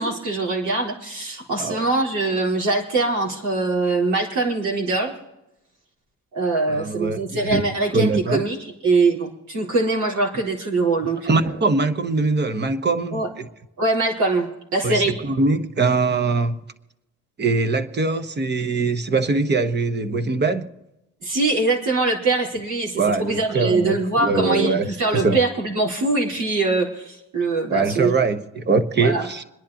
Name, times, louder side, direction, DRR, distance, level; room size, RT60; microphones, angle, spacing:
voice 1, 0.0-5.1 6.3-8.6 8.8-11.5 13.1-13.3 13.8-15.1 21.2-28.1 29.0-29.3, right 3 dB, 80° right, 4.3 m, -23 dB
voice 2, 6.7-7.6 7.9-8.4 11.2-13.5 14.8-16.6 17.4-20.7 23.0-25.4 27.7-29.4, right 3 dB, 35° right, 1.2 m, -22 dB
27.0 x 10.5 x 3.0 m
cardioid pair, 90°, 30 cm